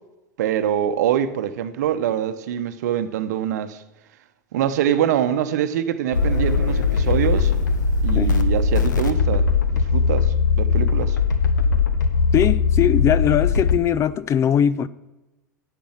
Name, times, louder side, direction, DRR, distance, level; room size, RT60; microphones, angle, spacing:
voice 1, 0.4-3.8 4.5-7.6 8.0-11.2, right 10 dB, 65° right, 0.8 m, -24 dB
sound 1, 6.1-13.8, left 5 dB, 75° left, 0.9 m, -20 dB
voice 2, 12.3-14.9, left 9 dB, 30° left, 0.4 m, -20 dB
10.0 x 7.0 x 7.5 m
figure-of-eight pair, 90°, 10 cm